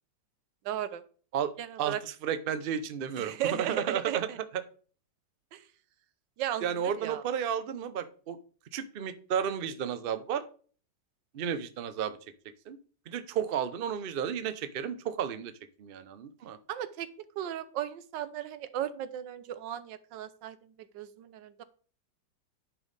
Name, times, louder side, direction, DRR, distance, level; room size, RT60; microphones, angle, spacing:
voice 1, 0.6-1.0 1.6-2.0 3.2-4.4 5.5-5.6 6.4-7.2 16.7-17.1 17.4-20.6 20.9-21.6, right 11 dB, 80° right, 14 dB, 1.4 m, -35 dB
voice 2, 2.2-4.3 6.6-8.4 8.7-10.4 11.3-12.2 12.7-12.8 13.1-15.5 15.8-16.6, right 8 dB, 65° right, 11 dB, 0.5 m, -32 dB
10.0 x 5.3 x 4.0 m, 0.41 s
omnidirectional pair, 1.9 m